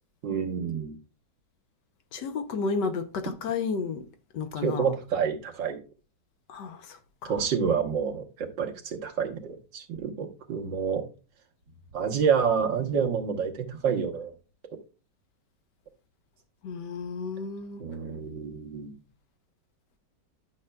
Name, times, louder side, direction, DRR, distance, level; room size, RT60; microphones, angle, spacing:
voice 1, 0.2-1.0 4.6-5.8 7.2-11.0 11.9-14.3 17.8-18.9, right 6 dB, 75° right, 1.8 m, -28 dB
voice 2, 2.1-4.1 4.3-4.9 6.5-7.3 16.6-17.8, left 4 dB, 75° left, 1.4 m, -32 dB
11.0 x 6.4 x 2.2 m
omnidirectional pair, 2.0 m